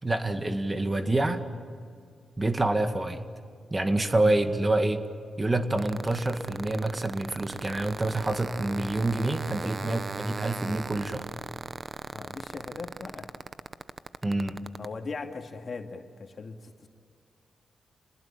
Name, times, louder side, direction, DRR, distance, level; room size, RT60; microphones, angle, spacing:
voice 1, 0.0-1.4 2.4-3.3 3.7-5.0 5.4-11.3 14.2-14.6, right 2 dB, 25° right, 7 dB, 2.1 m, -27 dB
sound 1, 5.8-14.9, right 4 dB, 45° right, 0.9 m, -37 dB
voice 2, 12.1-13.3 14.8-16.9, left 4 dB, 50° left, 4 dB, 2.5 m, -39 dB
29.0 x 20.5 x 9.0 m, 2.2 s
supercardioid pair, 55°, 0 cm